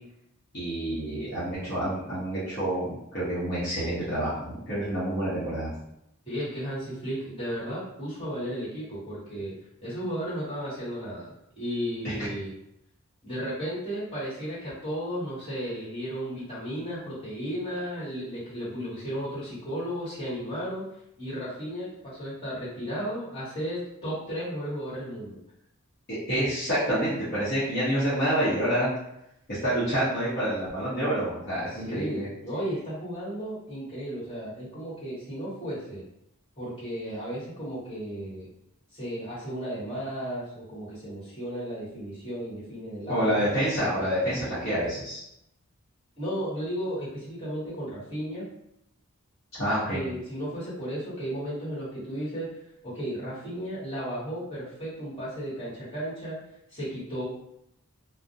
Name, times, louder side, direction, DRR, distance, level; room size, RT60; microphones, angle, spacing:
voice 1, 0.5-5.7 12.0-12.1 26.3-28.9 29.5-32.3 43.1-45.2 49.6-50.0, right 1 dB, 45° left, -11 dB, 0.8 m, -28 dB
voice 2, 6.2-9.5 9.8-12.5 13.2-20.8 21.2-25.4 31.7-36.0 36.6-38.5 38.9-43.5 46.2-48.4 49.9-52.5 52.8-56.4 56.7-57.2, equal, 25° left, -10 dB, 1.2 m, -34 dB
2.4 x 2.1 x 2.6 m, 0.79 s
head